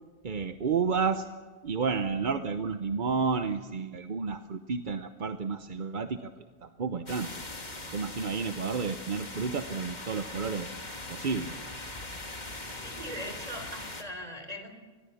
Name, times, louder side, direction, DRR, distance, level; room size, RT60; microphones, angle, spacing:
voice 1, 0.2-1.3 1.6-7.3 7.9-10.7 11.1-11.5, right 5 dB, 40° right, 8 dB, 0.8 m, -31 dB
sound 1, 7.1-14.0, left 2 dB, 30° left, 2.3 m, -41 dB
voice 2, 12.7-14.7, equal, 25° right, 6 dB, 4.1 m, -40 dB
26.0 x 21.0 x 7.1 m, 1.4 s
omnidirectional pair, 1.5 m